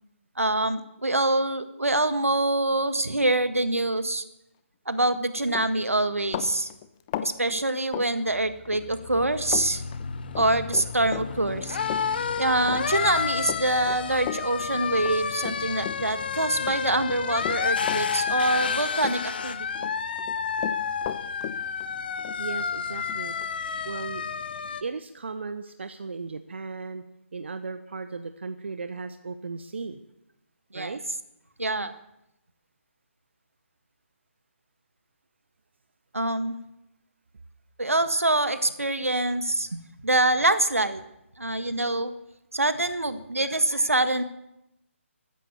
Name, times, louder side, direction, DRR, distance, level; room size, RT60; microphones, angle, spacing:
voice 1, 0.4-4.2 4.8-6.7 7.2-9.8 10.3-11.9 12.3-19.9 30.7-31.0 31.6-31.9 36.1-36.6 37.8-41.0 41.4-42.1 42.5-44.2, right 2 dB, 80° right, 10 dB, 1.7 m, -25 dB
Run, 5.1-5.2 5.5-8.8 9.1-9.7 9.9-16.3 16.6-18.7 19.0-19.9 20.2-23.5, left 12 dB, 25° left, 0.8 m, -36 dB
sound 1, 8.4-24.8, left 6 dB, 45° left, 1.2 m, -30 dB
voice 2, 22.4-23.3 23.8-24.2 24.8-27.0 27.3-30.0 30.7-31.0, right 4 dB, 55° right, 10 dB, 1.1 m, -36 dB
14.5 x 14.0 x 7.1 m, 0.85 s
figure-of-eight pair, 145°, 7 cm